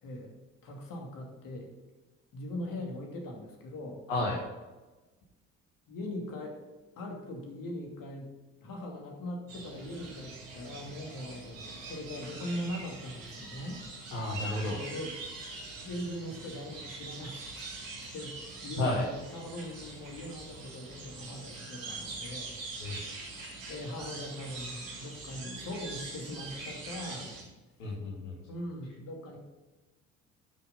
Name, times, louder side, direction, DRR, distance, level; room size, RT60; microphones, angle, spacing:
voice 1, 0.0-0.3 0.6-1.7 2.3-4.0 5.9-6.6 7.0-8.3 8.6-13.8 14.7-15.2 15.8-17.8 18.0-22.5 22.8-23.1 23.7-27.4 28.5-29.4, left 1 dB, 60° left, 1 dB, 2.8 m, -40 dB
voice 2, 4.1-4.4 14.1-14.8 18.8-19.0 22.8-23.0 27.8-28.4, left 2 dB, 85° left, -3 dB, 1.6 m, -31 dB
sound 1, 9.5-27.4, right 3 dB, 80° right, 2.6 m, -43 dB
14.0 x 6.4 x 4.2 m, 1.2 s
hypercardioid pair, 50°, 38 cm